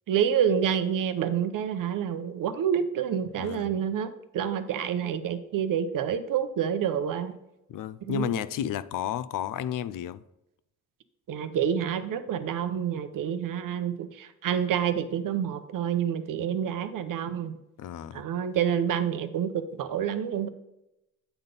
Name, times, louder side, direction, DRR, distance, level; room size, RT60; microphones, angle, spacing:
voice 1, 0.1-7.3 8.1-8.4 11.3-17.5 18.1-20.5, right 8 dB, 90° right, 0.8 m, -28 dB
voice 2, 3.4-3.8 7.7-10.2 17.8-18.2, left 10 dB, 80° left, 0.5 m, -32 dB
8.9 x 4.1 x 5.2 m
cardioid pair, 90°, 32 cm